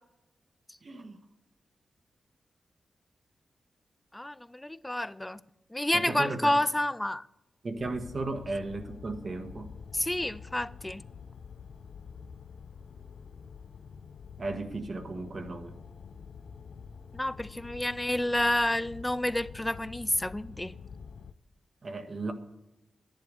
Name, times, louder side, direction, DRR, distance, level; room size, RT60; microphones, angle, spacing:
voice 1, 0.8-1.2 5.9-6.6 7.6-9.7 14.4-15.8 21.8-22.3, right 2 dB, 45° right, 1.6 m, -35 dB
voice 2, 4.1-5.4 5.7-7.2 9.9-11.0 17.1-20.7, left 1 dB, 10° left, 0.4 m, -29 dB
sound 1, 7.8-21.3, left 6 dB, 75° left, 0.6 m, -47 dB
11.0 x 10.5 x 6.7 m
wide cardioid pair, 115°, 0 cm